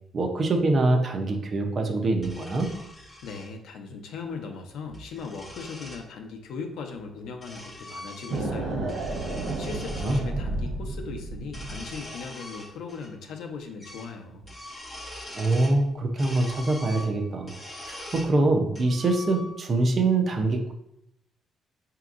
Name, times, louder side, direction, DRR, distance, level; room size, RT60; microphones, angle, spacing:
voice 1, 0.1-2.7 10.0-10.2 15.4-17.5 17.9-20.7, right 2 dB, 35° right, 3 dB, 0.6 m, -24 dB
sound 1, 2.2-3.5 4.7-6.0 6.9-8.6 8.8-10.2 11.4-13.1 13.4-13.5 13.8-14.1 14.4-15.8 16.2-18.3 18.7-19.7, left 1 dB, 30° left, 1.3 m, -42 dB
voice 2, 3.2-8.9 9.6-14.4, left 5 dB, 85° left, 4 dB, 0.6 m, -38 dB
sound 2, 8.3-12.0, right 2 dB, 75° right, 0.9 m, -31 dB
5.8 x 2.8 x 2.5 m, 0.78 s
cardioid pair, 145°, 0 cm